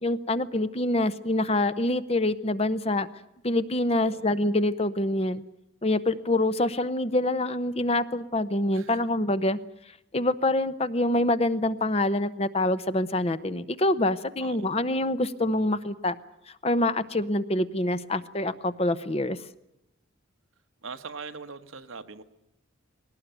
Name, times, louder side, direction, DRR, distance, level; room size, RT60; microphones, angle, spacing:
voice 1, 0.0-3.1 3.4-5.4 5.8-9.6 10.1-16.2 16.6-19.4, left 1 dB, 30° left, 13 dB, 0.8 m, -26 dB
voice 2, 20.8-22.2, right 4 dB, 80° right, 8 dB, 1.3 m, -41 dB
21.0 x 18.5 x 9.1 m, 0.87 s
head